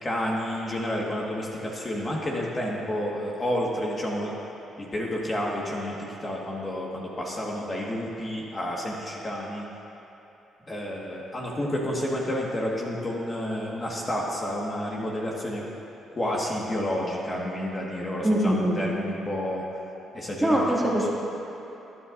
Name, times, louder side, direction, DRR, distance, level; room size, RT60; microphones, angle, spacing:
voice 1, 0.0-4.3 4.8-9.7 10.7-15.6 16.1-19.6 20.1-20.9, left 1 dB, 30° left, -3 dB, 1.6 m, -30 dB
voice 2, 18.2-18.8 20.4-21.1, right 1 dB, 10° right, -4 dB, 2.1 m, -23 dB
21.0 x 9.6 x 2.6 m, 3.0 s
cardioid pair, 90°, 0 cm